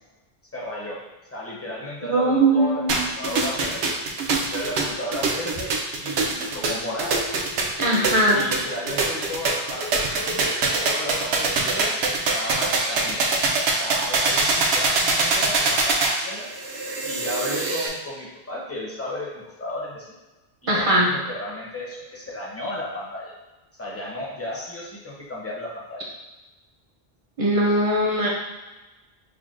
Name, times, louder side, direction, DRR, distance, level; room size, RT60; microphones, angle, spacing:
voice 1, 0.5-1.0 1.3-2.8 3.2-4.0 4.5-7.3 8.3-10.0 10.8-13.3 13.8-15.9 16.2-16.5 17.0-20.1 20.6-23.3 23.8-26.0, left 1 dB, 15° left, -4 dB, 0.6 m, -33 dB
voice 2, 2.0-3.1 7.8-8.4 20.7-21.1 27.4-28.3, right 1 dB, 45° right, -3 dB, 0.5 m, -20 dB
sound 1, 2.9-17.9, right 3 dB, 85° right, 0.8 m, -24 dB
5.8 x 2.2 x 2.4 m, 1.2 s
omnidirectional pair, 1.0 m